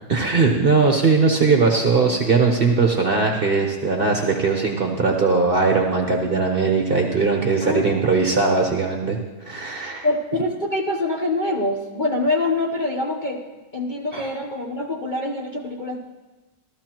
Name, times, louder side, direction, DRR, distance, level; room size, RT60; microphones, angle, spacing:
voice 1, 0.1-9.2 9.4-10.1 14.1-14.3, right 4 dB, 40° right, 2 dB, 0.9 m, -19 dB
voice 2, 7.6-8.4 10.0-13.4 13.7-16.0, left 2 dB, 35° left, -1 dB, 0.9 m, -25 dB
14.5 x 13.0 x 3.0 m, 1.2 s
omnidirectional pair, 1.8 m